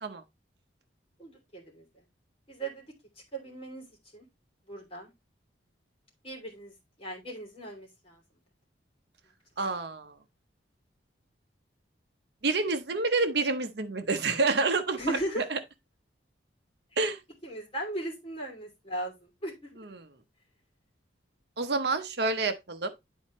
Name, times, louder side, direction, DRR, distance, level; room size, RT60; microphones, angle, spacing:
voice 1, 1.2-2.0 2.5-2.9 3.3-3.9 4.1-4.3 4.7-5.1 6.2-8.2 15.0-15.5 17.4-19.8, right 1 dB, 30° left, 2.9 m, -37 dB
voice 2, 9.6-10.2 12.4-15.6 17.0-17.2 19.8-20.0 21.6-22.9, right 3 dB, 60° right, 0.8 m, -28 dB
10.5 x 4.2 x 3.1 m
head